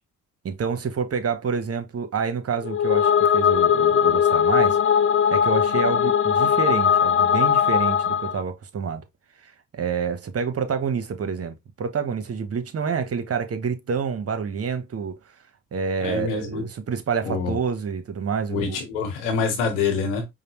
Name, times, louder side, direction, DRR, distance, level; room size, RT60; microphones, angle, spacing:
voice 1, 0.4-4.8 5.3-9.0 9.4-15.1 15.7-18.8, right 6 dB, 45° right, 0.9 m, -28 dB
sound 1, 2.6-8.4, left 8 dB, 35° left, 0.5 m, -19 dB
voice 2, 16.0-16.7 17.2-17.6 18.5-20.3, left 5 dB, 90° left, 1.1 m, -26 dB
4.8 x 2.1 x 3.0 m
hypercardioid pair, 50°, 34 cm